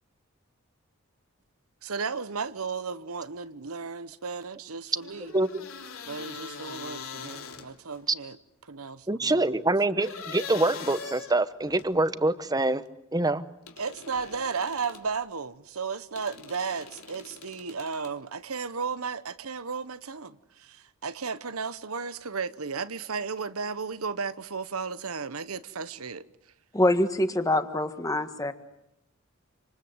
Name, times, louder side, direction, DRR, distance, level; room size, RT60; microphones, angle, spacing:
voice 1, 1.8-5.3 6.0-8.4 8.6-9.7 13.8-26.2, right 5 dB, 80° right, 1.1 m, -34 dB
sound 1, 5.0-8.0 10.0-11.9 13.7-15.1 16.2-18.1, left 5 dB, 75° left, 3.3 m, -42 dB
voice 2, 9.1-12.8 13.1-13.5, right 2 dB, 20° right, 1.0 m, -25 dB
voice 3, 26.7-28.5, left 1 dB, 15° left, 1.6 m, -25 dB
27.5 x 26.5 x 8.0 m
head